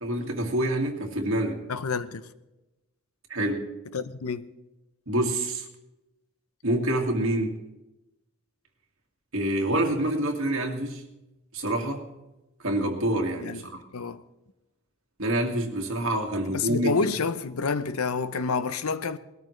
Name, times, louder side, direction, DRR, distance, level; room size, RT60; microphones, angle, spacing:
voice 1, 0.0-1.6 3.3-3.7 5.1-5.7 6.6-7.6 9.3-11.0 11.5-12.1 12.6-13.6 15.2-16.9, right 1 dB, 65° right, 2.1 m, -26 dB
voice 2, 1.7-2.3 3.9-4.5 13.4-13.6 13.9-14.2 16.5-19.2, left 4 dB, 85° left, 0.7 m, -28 dB
20.5 x 13.0 x 3.2 m
head